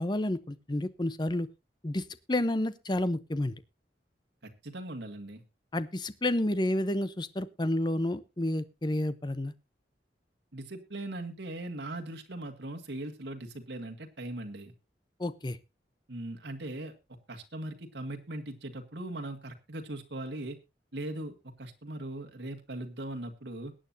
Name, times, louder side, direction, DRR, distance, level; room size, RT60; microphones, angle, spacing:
voice 1, 0.0-1.5 1.8-3.6 5.7-9.5 15.2-15.6, left 1 dB, 25° left, 14 dB, 0.7 m, -30 dB
voice 2, 4.4-5.4 10.5-14.7 16.1-16.9 17.3-20.6 20.9-23.7, right 1 dB, 80° right, 4 dB, 1.9 m, -39 dB
22.0 x 9.0 x 2.7 m, 0.26 s
head